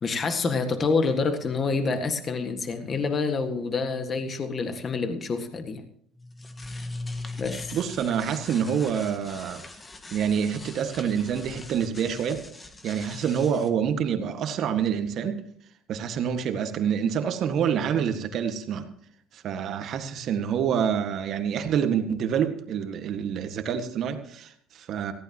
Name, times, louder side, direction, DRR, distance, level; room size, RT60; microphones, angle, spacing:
voice 1, 0.0-5.8 7.4-7.8, left 4 dB, 35° left, 7 dB, 1.8 m, -27 dB
sound 1, 6.1-13.7, left 2 dB, 20° left, 1.5 m, -41 dB
voice 2, 7.7-9.6 10.1-12.4 12.8-15.4 15.9-18.9 19.3-25.1, right 8 dB, 55° right, 7 dB, 1.8 m, -27 dB
19.0 x 15.0 x 3.0 m, 0.63 s
cardioid pair, 105°, 0 cm